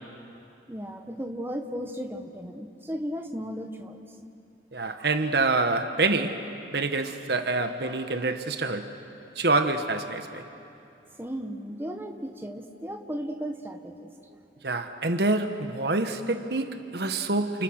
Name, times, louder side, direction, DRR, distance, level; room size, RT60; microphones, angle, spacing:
voice 1, 0.7-4.1 11.2-14.4, equal, 15° right, 1.4 m, -35 dB
voice 2, 4.7-6.5 6.7-8.9 9.4-10.4 14.6-17.6, right 3 dB, 65° right, 1.3 m, -26 dB
29.5 x 29.5 x 6.6 m
head